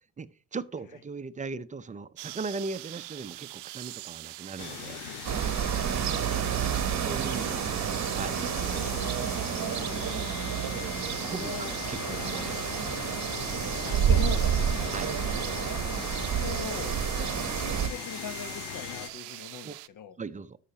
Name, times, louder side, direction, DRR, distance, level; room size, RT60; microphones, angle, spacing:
voice 1, 0.2-5.0 6.5-7.7 8.1-9.2 10.4-10.9 11.2-11.5 11.9-12.7 14.9-15.1 19.6-19.8 20.2-20.6, right 4 dB, 20° right, 0.6 m, -39 dB
sound 1, 2.2-19.9, right 20 dB, 70° right, 0.6 m, -44 dB
sound 2, 4.6-19.1, left 12 dB, 70° left, 0.8 m, -39 dB
sound 3, 5.2-17.9, right 9 dB, 40° right, 1.0 m, -30 dB
voice 2, 10.4-10.9 11.4-11.8 12.8-13.0 13.8-14.9 16.2-20.2, left 7 dB, 50° left, 1.1 m, -41 dB
12.5 x 5.8 x 2.8 m
supercardioid pair, 85°, 41 cm